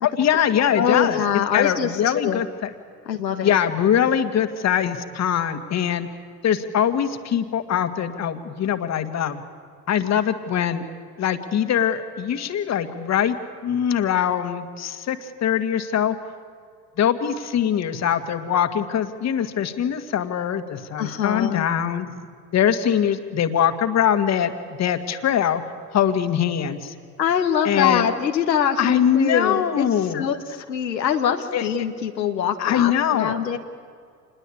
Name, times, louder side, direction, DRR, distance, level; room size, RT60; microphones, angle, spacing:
voice 1, 0.0-2.7 3.4-6.1 6.4-9.4 9.9-10.8 11.2-16.2 17.0-22.1 22.5-24.5 24.8-25.6 25.9-26.9 27.6-28.1 28.8-30.3 31.5-31.6 32.6-33.4, left 9 dB, 30° left, 9 dB, 1.9 m, -22 dB
voice 2, 0.8-2.4 3.0-3.6 21.0-21.6 27.2-29.8 30.1-33.6, left 8 dB, 80° left, 6 dB, 1.6 m, -24 dB
27.0 x 21.0 x 8.6 m, 2.2 s
figure-of-eight pair, 80°, 50 cm